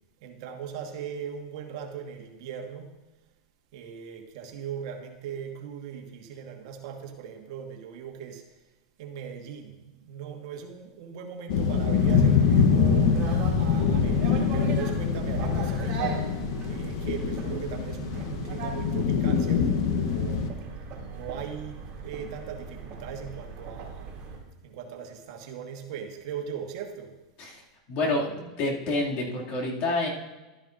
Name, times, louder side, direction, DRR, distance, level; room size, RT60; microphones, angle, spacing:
voice 1, 0.2-2.9 3.7-8.4 9.0-13.1 13.5-16.3 16.7-20.4 21.1-24.1 24.6-27.1, right 7 dB, 60° right, 4 dB, 1.4 m, -39 dB
sound 1, 11.5-20.5, left 6 dB, 65° left, 0.9 m, -24 dB
sound 2, 12.0-24.4, right 4 dB, 35° right, 3.3 m, -39 dB
voice 2, 27.9-30.1, left 2 dB, 50° left, -2 dB, 2.3 m, -28 dB
12.5 x 10.5 x 2.5 m, 1.1 s
hypercardioid pair, 125°, 3 cm